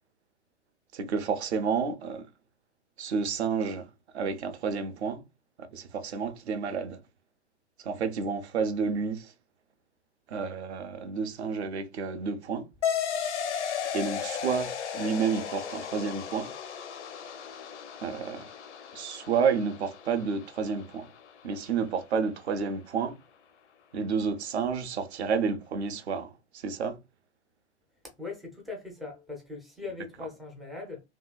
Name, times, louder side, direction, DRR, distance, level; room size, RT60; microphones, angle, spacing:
voice 1, 0.9-2.3 3.0-3.9 4.1-5.2 5.7-7.0 7.8-9.3 10.3-12.7 13.9-16.5 18.0-18.4 18.9-21.1 21.4-23.2 23.9-26.3 26.6-27.0, right 5 dB, 65° right, 0.7 m, -30 dB
sound 1, 12.8-21.8, left 8 dB, 75° left, 0.6 m, -35 dB
voice 2, 28.2-31.0, left 4 dB, ahead, 0.3 m, -40 dB
2.8 x 2.7 x 2.3 m
figure-of-eight pair, 100°, 36 cm